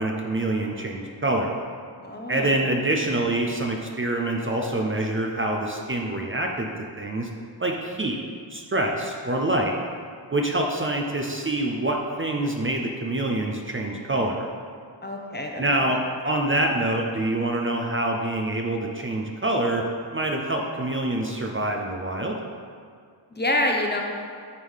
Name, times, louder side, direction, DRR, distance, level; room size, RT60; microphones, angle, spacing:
voice 1, 0.0-1.6 2.3-6.7 7.0-7.3 7.6-8.2 8.5-9.7 10.3-14.5 15.6-19.9 20.1-22.4, right 1 dB, 25° right, 1 dB, 0.6 m, -26 dB
voice 2, 2.0-2.5 15.0-15.7 23.3-24.0, left 1 dB, 20° left, 1 dB, 0.8 m, -26 dB
9.7 x 3.7 x 6.3 m, 2.2 s
wide cardioid pair, 130°, 46 cm